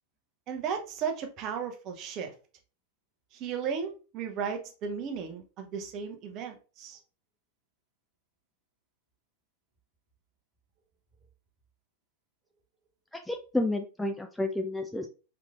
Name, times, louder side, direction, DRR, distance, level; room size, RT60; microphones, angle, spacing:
voice 1, 0.5-2.3 3.3-7.0, right 6 dB, 35° right, 0.7 m, -35 dB
voice 2, 13.1-15.1, left 2 dB, 5° left, 0.4 m, -31 dB
3.5 x 3.1 x 2.4 m
figure-of-eight pair, 90°, 0 cm